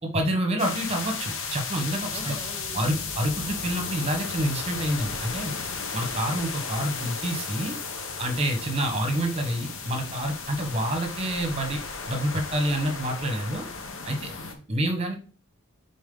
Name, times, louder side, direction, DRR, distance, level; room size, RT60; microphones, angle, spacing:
voice 1, 0.0-2.3 2.7-5.5 5.9-7.8 8.2-11.8 12.1-13.7 14.0-14.3 14.7-15.1, right 1 dB, 30° right, 4 dB, 1.3 m, -28 dB
sound 1, 0.6-14.5, left 5 dB, 75° left, 1.1 m, -35 dB
voice 2, 2.1-3.0 8.6-8.8 14.1-14.6, equal, 25° left, 1 dB, 1.8 m, -43 dB
7.2 x 4.3 x 3.9 m, 0.38 s
head